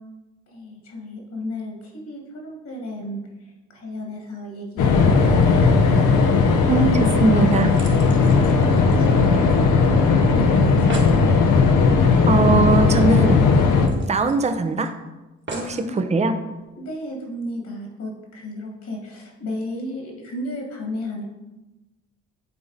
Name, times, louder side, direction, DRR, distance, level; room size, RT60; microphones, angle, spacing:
voice 1, 0.5-3.2 3.7-6.3 8.2-9.5 9.7-11.3 15.5-16.1 16.7-21.2, left 1 dB, 60° left, 0 dB, 2.0 m, -34 dB
sound 1, 4.8-13.9, left 4 dB, 80° left, 0.9 m, -17 dB
voice 2, 6.7-7.7 12.3-13.4 14.1-14.9 15.6-16.4, right 3 dB, 20° right, 8 dB, 0.6 m, -20 dB
sound 2, 7.1-9.7 10.0-10.1 10.4-10.5 10.7-11.2 12.7-12.8 13.1-13.2 13.9-14.9 15.5-15.9 16.6-16.7, right 2 dB, 40° right, 1.6 m, -38 dB
9.0 x 3.8 x 4.0 m, 1.1 s
cardioid pair, 90°, 30 cm